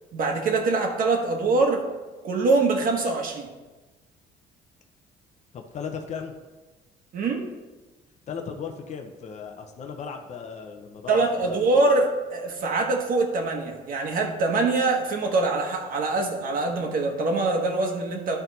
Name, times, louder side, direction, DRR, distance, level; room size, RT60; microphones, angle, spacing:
voice 1, 0.1-1.9 2.2-3.5 7.1-7.4 11.1-18.4, right 3 dB, 55° right, 1 dB, 1.3 m, -24 dB
voice 2, 5.5-6.3 8.3-11.7, left 6 dB, 45° left, 4 dB, 0.8 m, -36 dB
11.0 x 4.5 x 4.1 m, 1.2 s
cardioid pair, 110°, 17 cm